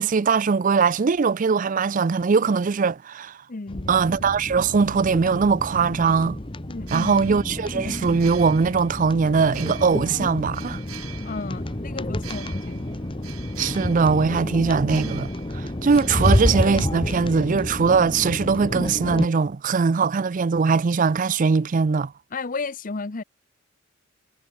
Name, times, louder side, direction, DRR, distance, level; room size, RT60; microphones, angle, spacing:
voice 1, 0.0-3.4 3.9-6.4 6.9-10.8 13.6-22.1, right 5 dB, 40° right, 0.4 m, -21 dB
voice 2, 3.5-3.9 6.7-7.2 11.3-12.9 22.3-23.2, left 3 dB, 40° left, 0.7 m, -33 dB
sound 1, 3.7-19.3, left 1 dB, 25° left, 1.1 m, -29 dB
sound 2, 6.8-17.6, right 10 dB, 85° right, 2.9 m, -44 dB
head